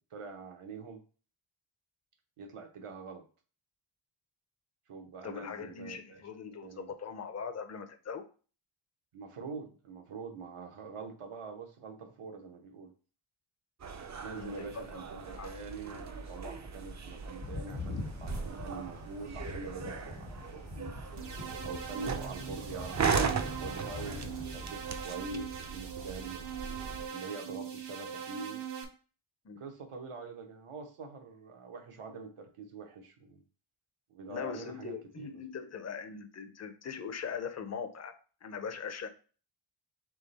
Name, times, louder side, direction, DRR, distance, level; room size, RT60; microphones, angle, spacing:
voice 1, 0.1-1.0 2.4-3.2 4.9-6.2 6.5-6.9 9.1-12.9 14.2-20.9 21.6-26.5 27.1-28.6 29.6-33.4 34.1-35.4, right 4 dB, 80° right, 3 dB, 1.0 m, -44 dB
voice 2, 5.2-8.2 14.3-15.0 15.3-15.6 29.4-29.6 34.3-38.2 38.4-39.1, left 6 dB, 35° left, 7 dB, 0.5 m, -41 dB
sound 1, 13.8-27.1, right 5 dB, 35° right, 0.4 m, -38 dB
sound 2, 17.4-24.7, left 3 dB, 75° left, 1.2 m, -44 dB
sound 3, 21.2-28.8, right 8 dB, 55° right, 0.8 m, -42 dB
3.7 x 3.4 x 4.0 m, 0.39 s
wide cardioid pair, 150°, 50 cm